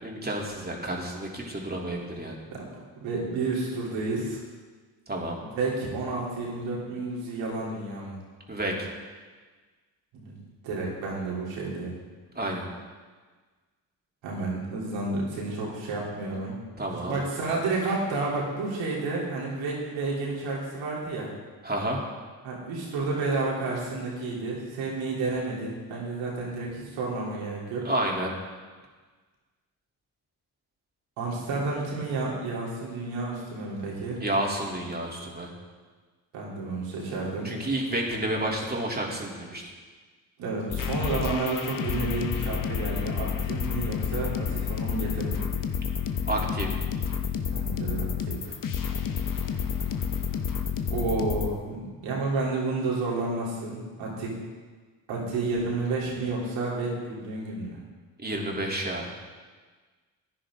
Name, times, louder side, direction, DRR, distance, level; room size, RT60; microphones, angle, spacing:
voice 1, 0.0-2.4 5.1-5.4 8.5-8.9 12.3-12.7 16.8-17.1 21.6-22.0 27.8-28.3 34.2-35.5 37.4-39.7 46.3-46.7 58.2-59.1, right 1 dB, 20° right, -2 dB, 3.1 m, -30 dB
voice 2, 3.0-4.4 5.4-8.2 10.2-10.3 10.6-11.9 14.2-16.6 16.9-21.3 22.4-27.9 31.2-34.2 36.3-37.5 40.4-45.4 47.5-48.6 50.9-54.3 55.1-57.8, right 3 dB, 80° right, -4 dB, 3.5 m, -31 dB
sound 1, 40.7-51.5, left 7 dB, 45° left, 1.1 m, -30 dB
15.0 x 10.0 x 3.7 m, 1.4 s
supercardioid pair, 55°, 45 cm